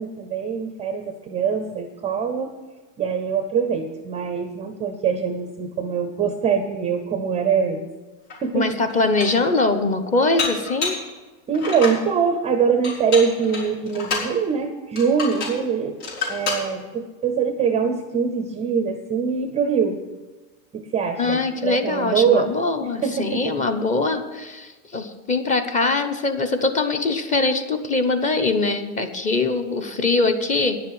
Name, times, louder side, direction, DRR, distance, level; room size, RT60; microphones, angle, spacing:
voice 1, 0.0-2.5 3.0-7.9 8.4-8.8 11.5-16.0 16.3-20.0 20.7-22.5 22.8-23.5, right 6 dB, 15° right, 6 dB, 0.5 m, -23 dB
Dishes pots and pans, 8.3-8.4 8.9-9.5 10.4-11.1 11.5-12.0 12.8-14.3 15.0-15.6 16.0-16.7, left 4 dB, 70° left, 5.2 m, -28 dB
voice 2, 8.5-10.9 21.2-30.8, left 3 dB, 15° left, 8 dB, 0.8 m, -22 dB
10.5 x 7.4 x 9.3 m, 1.2 s
supercardioid pair, 140°, 46 cm